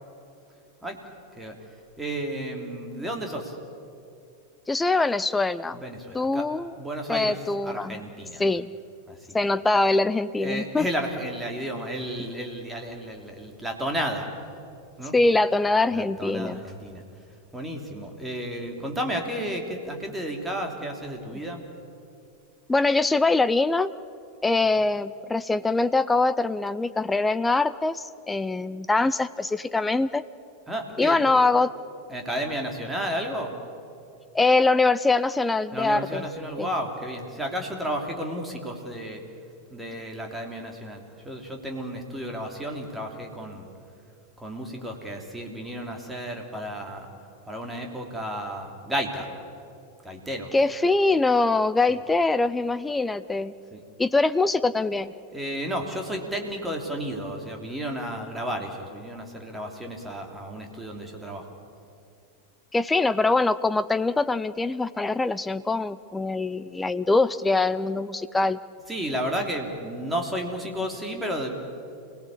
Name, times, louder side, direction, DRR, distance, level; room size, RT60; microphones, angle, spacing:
voice 1, 2.0-3.6 5.7-6.4 6.8-7.4 7.6-8.4 9.1-9.4 10.4-14.3 15.0-15.1 15.9-17.0 17.5-21.6 30.7-31.2 32.1-33.5 35.7-39.2 39.7-43.7 44.4-47.1 47.4-49.3 50.0-50.6 51.9-52.0 53.7-53.8 55.3-61.5 68.9-71.5, equal, 5° right, 2 dB, 3.2 m, -32 dB
voice 2, 4.7-5.8 6.1-6.7 7.1-8.0 8.4-8.7 9.3-10.9 15.1-16.6 22.7-23.9 24.4-30.2 31.0-31.7 34.3-36.2 36.6-36.7 50.5-53.5 54.0-55.1 62.7-68.6, left 3 dB, 10° left, 14 dB, 0.6 m, -23 dB
28.0 x 18.0 x 8.5 m, 2.5 s
figure-of-eight pair, 90°, 0 cm